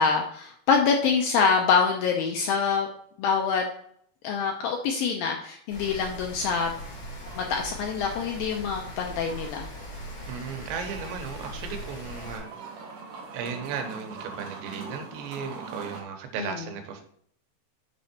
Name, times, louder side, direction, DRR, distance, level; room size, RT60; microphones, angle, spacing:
voice 1, 0.0-2.9 3.2-3.6 4.2-6.7 7.4-9.7 16.4-16.5, left 5 dB, 80° left, 2 dB, 2.1 m, -25 dB
Rain, 5.7-12.4, equal, 50° left, 4.0 m, -40 dB
sound 1, 7.2-16.0, right 4 dB, 60° right, 2.7 m, -44 dB
voice 2, 10.3-12.5 13.3-17.0, right 6 dB, 85° right, 5 dB, 3.2 m, -35 dB
7.4 x 5.3 x 4.3 m, 0.64 s
omnidirectional pair, 4.9 m